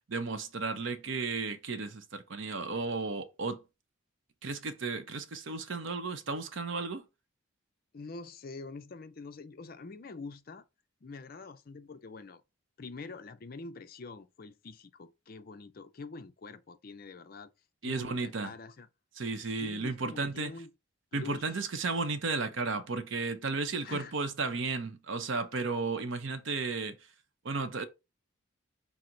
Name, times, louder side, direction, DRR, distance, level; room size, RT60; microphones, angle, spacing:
voice 1, 0.1-3.6 4.4-7.0 17.8-18.5 19.2-20.5 21.1-27.0 27.4-27.8, right 4 dB, 60° right, 0.6 m, -34 dB
voice 2, 7.9-10.6 11.0-12.4 12.8-17.5 17.8-18.9 19.6-20.7 21.1-21.6 23.8-24.1, left 3 dB, 45° left, 0.4 m, -45 dB
5.9 x 2.0 x 3.8 m
head